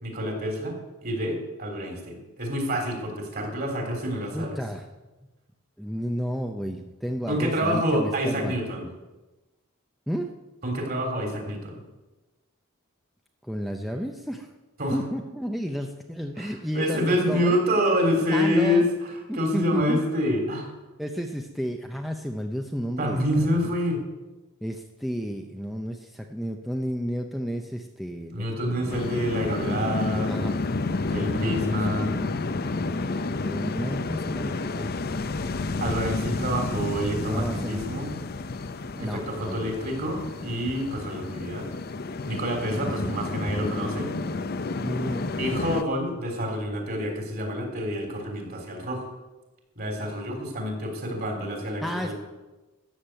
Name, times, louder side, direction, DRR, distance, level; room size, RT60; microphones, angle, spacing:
voice 1, 0.0-4.6 7.3-8.9 10.6-11.8 14.8-15.0 16.4-18.9 19.3-20.7 23.0-24.0 28.3-30.3 31.1-32.1 35.8-38.1 39.0-41.7 42.3-44.1 45.4-49.1 49.8-52.1, equal, 45° right, 3 dB, 3.4 m, -27 dB
voice 2, 4.3-4.9 5.8-8.6 10.1-10.3 13.4-14.5 14.9-17.6 18.3-18.9 19.3-20.0 21.0-23.7 24.6-28.4 28.7-29.4 30.3-30.5 31.2-31.8 33.4-35.0 37.3-37.8 39.0-39.8 42.8-43.1 44.8-45.3 51.8-52.1, equal, ahead, 3 dB, 0.6 m, -32 dB
sound 1, 28.9-45.8, left 3 dB, 45° left, 0.6 m, -30 dB
13.0 x 7.4 x 9.0 m, 1.1 s
head